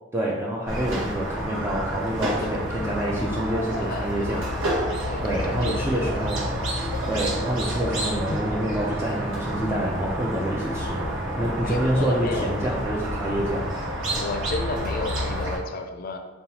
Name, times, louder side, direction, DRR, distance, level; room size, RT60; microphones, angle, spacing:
voice 1, 0.1-4.5 5.2-6.5 7.1-13.7, right 1 dB, 15° right, -4 dB, 0.4 m, -27 dB
Squeak, 0.7-15.6, equal, 80° right, 0.9 m, -29 dB
voice 2, 2.4-2.9 3.8-4.6 5.1-6.3 11.6-12.8 14.1-16.2, left 3 dB, 50° left, 5 dB, 0.4 m, -33 dB
5.2 x 2.3 x 2.9 m, 1.2 s
head